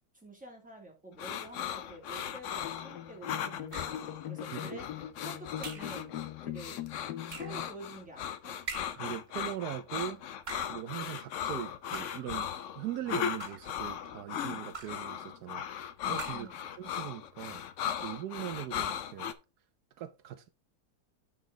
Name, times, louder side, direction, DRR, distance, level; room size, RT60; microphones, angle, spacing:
voice 1, 0.1-4.8 5.2-6.8 7.3-8.6 16.3-16.6, right 1 dB, 5° right, 2.3 m, -48 dB
sound 1, 1.2-19.3, left 9 dB, 65° left, 0.8 m, -37 dB
sound 2, 2.6-7.7, left 11 dB, 85° left, 1.3 m, -41 dB
sound 3, 3.7-4.1 5.6-6.0 7.3-7.6 8.7-9.1 10.3-10.8 11.9-12.3 13.2-13.8 14.7-15.1 16.1-16.6, right 4 dB, 35° right, 1.0 m, -44 dB
voice 2, 9.0-10.2 10.7-12.5 12.7-16.5 16.8-17.6 18.0-19.3 20.0-20.5, right 12 dB, 75° right, 1.2 m, -40 dB
8.2 x 6.0 x 3.7 m
omnidirectional pair, 1.7 m